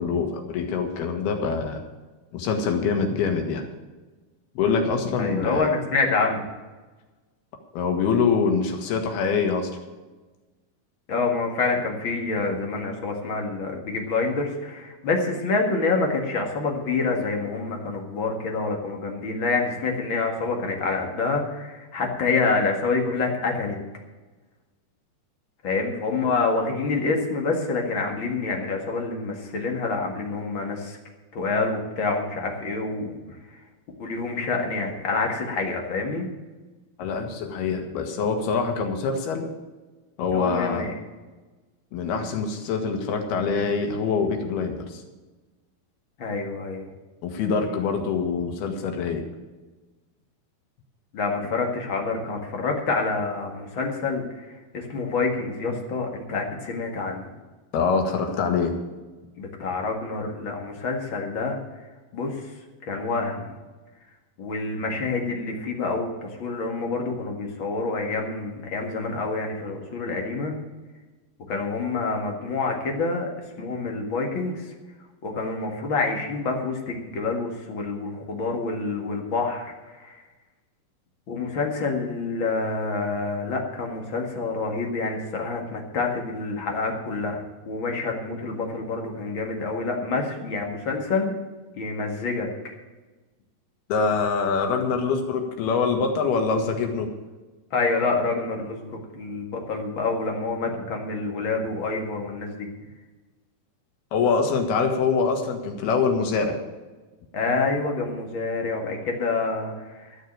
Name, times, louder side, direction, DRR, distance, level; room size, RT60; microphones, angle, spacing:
voice 1, 0.0-1.8 2.3-3.7 4.6-5.7 7.7-9.7 37.0-39.5 40.2-40.9 41.9-45.0 47.2-49.3 57.7-58.7 93.9-97.1 104.1-106.6, left 5 dB, 80° left, 4 dB, 3.6 m, -24 dB
voice 2, 5.2-6.4 11.1-23.8 25.6-31.0 31.3-33.2 34.0-36.3 40.3-40.9 46.2-46.9 51.1-54.5 54.7-57.3 59.4-61.6 62.1-62.4 62.8-63.5 64.4-70.6 71.5-73.3 73.6-74.7 75.2-80.2 81.3-91.3 91.8-92.5 97.7-102.7 107.3-109.7 110.0-110.1, left 3 dB, 45° left, 2 dB, 1.9 m, -27 dB
13.0 x 6.5 x 8.7 m, 1.2 s
omnidirectional pair, 4.4 m